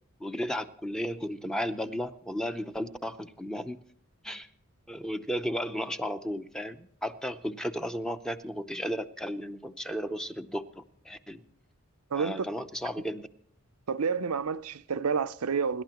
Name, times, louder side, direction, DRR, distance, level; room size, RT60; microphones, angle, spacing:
voice 1, 0.2-3.8 4.2-4.5 4.9-11.4 12.1-13.3, equal, 5° left, 0.7 m, -34 dB
voice 2, 12.1-12.5 13.9-15.8, right 5 dB, 90° right, 0.6 m, -29 dB
28.0 x 12.0 x 3.0 m
head